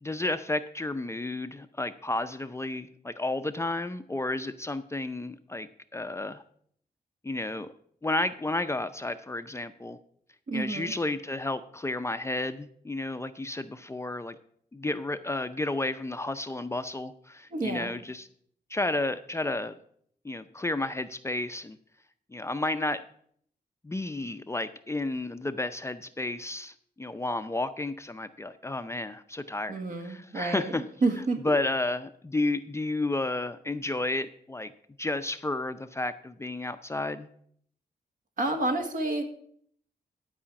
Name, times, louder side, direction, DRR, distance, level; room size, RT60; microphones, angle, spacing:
voice 1, 0.0-6.4 7.2-7.7 8.0-10.0 10.5-14.4 14.7-18.3 18.7-19.7 20.2-21.8 22.3-23.0 23.8-30.8 31.4-34.7 35.0-37.3, left 2 dB, 15° left, 10 dB, 0.5 m, -32 dB
voice 2, 10.5-10.9 17.5-17.9 29.7-31.4 38.4-39.3, right 2 dB, 60° right, 4 dB, 1.7 m, -29 dB
11.5 x 5.0 x 7.1 m, 0.63 s
cardioid pair, 95°, 16 cm